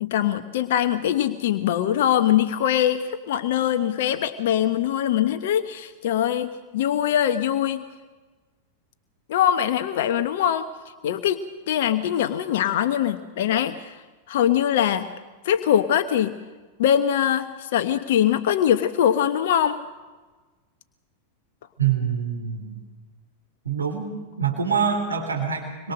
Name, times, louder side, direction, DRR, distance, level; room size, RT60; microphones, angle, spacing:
voice 1, 0.0-7.8 9.3-10.7 11.0-14.0 14.3-15.1 15.4-16.4 16.8-19.8, left 10 dB, 55° left, 10 dB, 1.0 m, -22 dB
voice 2, 21.8-22.8 23.7-24.1 24.4-25.9, right 7 dB, 75° right, 3 dB, 3.4 m, -25 dB
25.0 x 22.0 x 6.6 m, 1.3 s
figure-of-eight pair, 90°, 0 cm